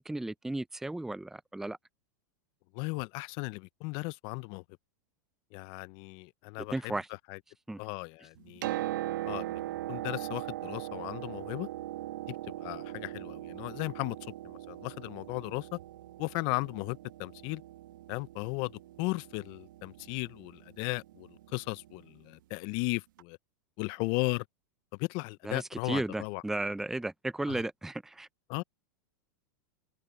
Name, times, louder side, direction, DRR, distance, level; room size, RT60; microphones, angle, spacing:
voice 1, 0.0-1.8 6.7-7.1 7.7-7.8 25.4-28.3, right 2 dB, 5° right, 0.5 m, -34 dB
voice 2, 2.7-4.6 5.5-6.9 7.3-7.4 7.8-11.7 12.3-15.8 16.2-17.6 18.1-18.7 19.0-23.4 23.8-24.4 25.0-26.4 27.5-27.6 28.5-28.6, left 26 dB, 50° left, 0.6 m, -36 dB
Piano, 8.4-22.1 23.2-23.3, right 14 dB, 75° right, 1.8 m, -40 dB
hypercardioid pair, 120°, 11 cm